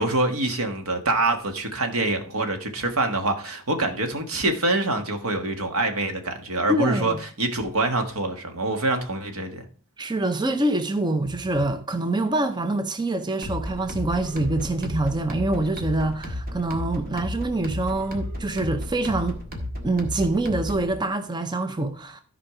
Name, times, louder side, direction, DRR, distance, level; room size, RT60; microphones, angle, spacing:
voice 1, 0.0-9.6, right 2 dB, 80° right, 1.5 m, -25 dB
voice 2, 6.7-7.2 10.0-19.4 19.8-22.2, right 2 dB, 20° right, 0.6 m, -25 dB
sound 1, 13.4-20.9, left 1 dB, 45° right, 1.8 m, -33 dB
13.0 x 4.9 x 4.9 m
head